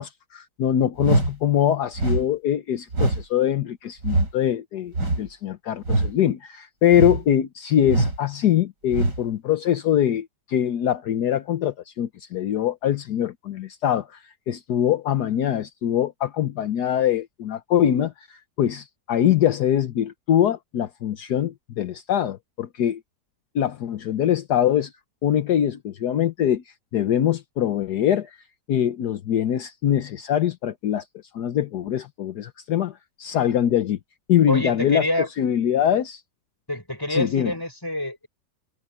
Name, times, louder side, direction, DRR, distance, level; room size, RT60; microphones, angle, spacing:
voice 1, 0.0-23.0 23.5-24.9 25.2-26.6 26.9-28.4 28.7-31.0 31.3-34.0 34.3-35.1 35.4-36.2 37.1-37.5, left 10 dB, 70° left, 1.4 m, -23 dB
sound 1, 1.0-1.3 1.9-2.2 2.9-3.2 4.0-4.3 4.9-5.3 5.8-6.1 6.9-7.2 7.9-8.2 8.9-9.2, right 2 dB, 80° right, 6.0 m, -22 dB
voice 2, 34.5-35.3 36.7-38.3, left 1 dB, 10° left, 7.0 m, -27 dB
omnidirectional pair, 1.8 m